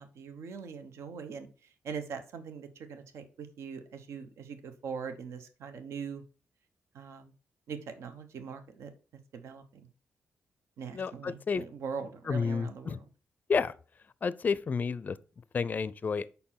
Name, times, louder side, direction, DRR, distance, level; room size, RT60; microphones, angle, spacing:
voice 1, 0.0-6.2 6.9-7.3 7.7-8.9 9.3-9.9 10.8-13.0, right 6 dB, 80° right, 0.9 m, -42 dB
voice 2, 10.9-11.6 12.3-13.0 13.5-13.7 14.2-15.2 15.5-16.3, left 5 dB, 35° left, 0.4 m, -30 dB
5.4 x 4.4 x 5.7 m
cardioid pair, 100°, 5 cm